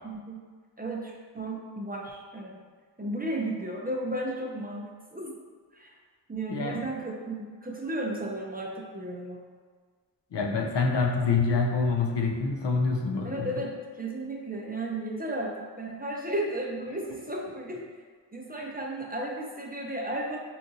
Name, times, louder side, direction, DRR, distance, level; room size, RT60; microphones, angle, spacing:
voice 1, 0.0-0.4 0.8-2.6 3.0-5.3 5.7-5.9 6.3-9.4 13.2-17.8 18.3-20.4, right 1 dB, 20° right, -1 dB, 0.4 m, -34 dB
voice 2, 6.5-6.9 10.3-13.5 18.6-18.7, left 4 dB, 70° left, 2 dB, 0.5 m, -26 dB
3.8 x 2.4 x 2.6 m, 1.5 s
wide cardioid pair, 45°, 44 cm